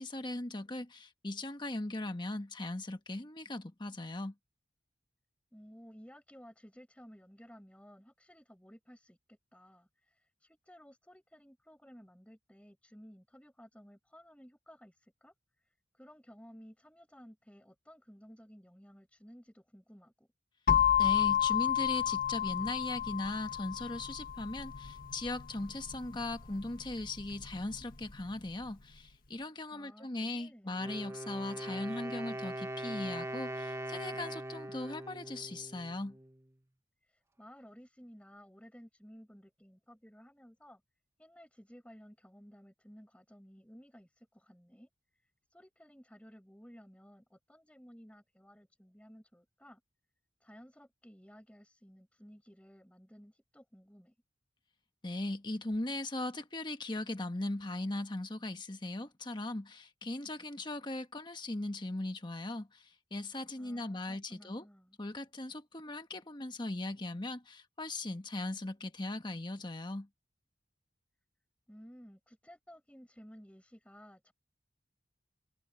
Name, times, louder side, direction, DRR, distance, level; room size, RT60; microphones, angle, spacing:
voice 1, 0.0-4.3 21.0-36.2 55.0-64.6 65.0-70.1, left 2 dB, 25° left, 1.3 m, -39 dB
voice 2, 5.5-15.3 15.9-20.3 29.7-30.8 37.1-40.8 41.2-44.9 45.5-49.8 50.4-54.1 63.6-65.0 71.7-74.3, equal, 5° left, 5.7 m, -56 dB
sound 1, 20.7-28.5, left 9 dB, 55° left, 1.6 m, -32 dB
Wind instrument woodwind instrument, 30.7-36.5, right 1 dB, 15° right, 1.3 m, -41 dB
head